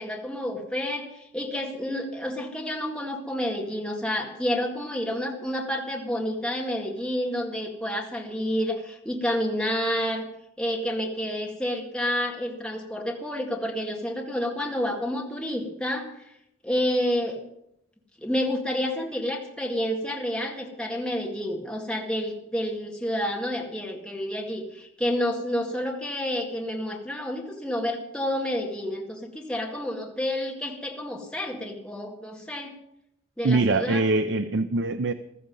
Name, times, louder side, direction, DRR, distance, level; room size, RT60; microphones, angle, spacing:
voice 1, 0.0-10.2 10.6-16.1 16.6-17.4 18.2-32.7 33.4-34.0, equal, 5° left, 1.9 m, -29 dB
voice 2, 33.4-35.1, right 3 dB, 65° right, 0.6 m, -23 dB
15.5 x 14.5 x 5.4 m
head